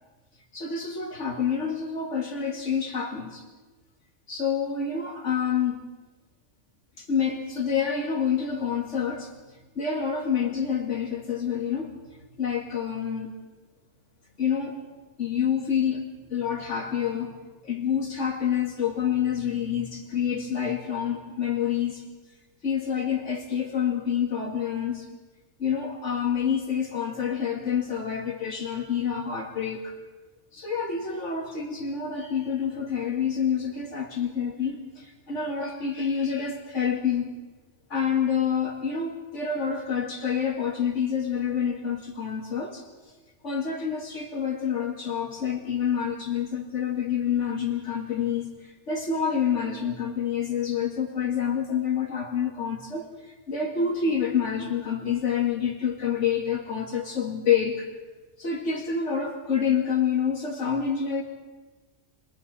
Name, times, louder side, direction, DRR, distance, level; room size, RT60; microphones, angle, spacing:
voice 1, 0.5-3.5 4.3-5.9 7.0-12.0 12.4-13.4 14.4-14.8 15.2-16.0 16.3-17.3 17.6-22.1 22.6-25.1 25.6-29.9 30.5-37.4 37.9-42.8 43.4-57.9 58.4-61.2, left 7 dB, 75° left, 0 dB, 2.2 m, -27 dB
30.0 x 22.0 x 4.1 m, 1.3 s
omnidirectional pair, 1.2 m